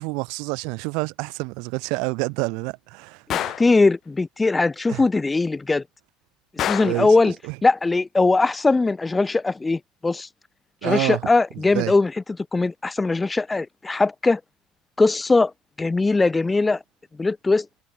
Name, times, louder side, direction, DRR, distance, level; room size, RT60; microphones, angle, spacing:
voice 1, 0.0-3.6 4.9-5.0 6.7-7.1 7.4-7.6 10.8-11.2 11.7-11.9, right 31 dB, 70° right, 1.9 m, -28 dB
Gunshot gunfire, 3.3-3.7 6.6-7.1, left 12 dB, 45° left, 0.5 m, -26 dB
voice 2, 3.3-5.8 6.5-7.3 7.6-10.3 10.8-12.1 12.5-14.4 15.0-15.5 15.8-16.8 17.2-17.7, left 3 dB, 15° left, 0.8 m, -20 dB
cardioid pair, 130°, 0 cm